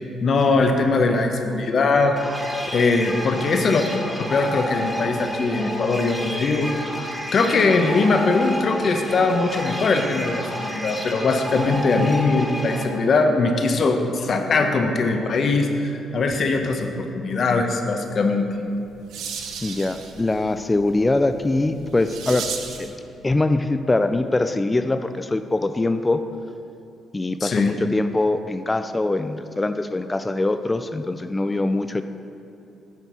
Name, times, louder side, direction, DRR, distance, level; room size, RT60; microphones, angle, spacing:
voice 1, 0.2-2.2 2.7-3.9 4.2-6.7 7.3-18.4 27.4-27.7, left 3 dB, 50° left, 5 dB, 0.9 m, -21 dB
sound 1, 2.2-12.8, equal, ahead, 1.2 m, -30 dB
sound 2, 18.5-23.0, right 6 dB, 85° right, 0.8 m, -36 dB
voice 2, 19.6-22.5 22.8-22.9 23.2-26.2 27.1-32.0, left 2 dB, 20° left, 9 dB, 0.3 m, -23 dB
9.6 x 4.6 x 6.8 m, 2.7 s
cardioid pair, 90°, 0 cm